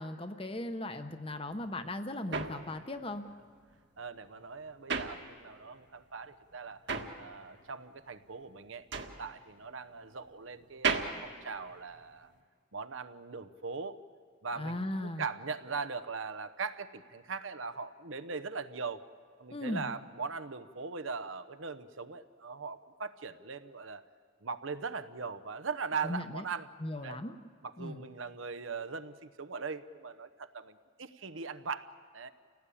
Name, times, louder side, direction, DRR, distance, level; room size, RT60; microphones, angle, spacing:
voice 1, 0.0-3.3 14.6-15.2 19.5-19.9 26.0-26.4 26.8-27.3 27.8-28.0, left 1 dB, 25° left, 9 dB, 1.0 m, -37 dB
sound 1, 1.5-5.8 6.1-12.4, right 5 dB, 60° right, 1.6 m, -37 dB
voice 2, 4.0-6.8 7.2-12.3 12.7-14.0 14.4-19.0 19.4-24.0 24.4-26.7 27.0-27.2 27.6-32.3, right 5 dB, 75° right, 12 dB, 1.0 m, -40 dB
29.5 x 17.5 x 8.6 m, 2.1 s
head